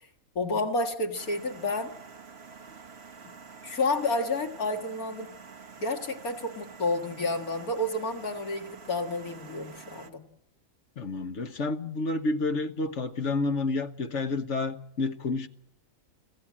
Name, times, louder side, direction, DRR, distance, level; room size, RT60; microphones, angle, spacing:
voice 1, 0.4-1.9 3.6-5.3 5.8-10.2, left 2 dB, 85° left, 3 dB, 2.4 m, -30 dB
sound 1, 1.1-10.1, right 5 dB, 50° right, 1.5 m, -48 dB
voice 2, 11.0-15.5, left 3 dB, 55° left, 8 dB, 1.5 m, -29 dB
25.5 x 15.5 x 7.5 m, 0.82 s
omnidirectional pair, 1.5 m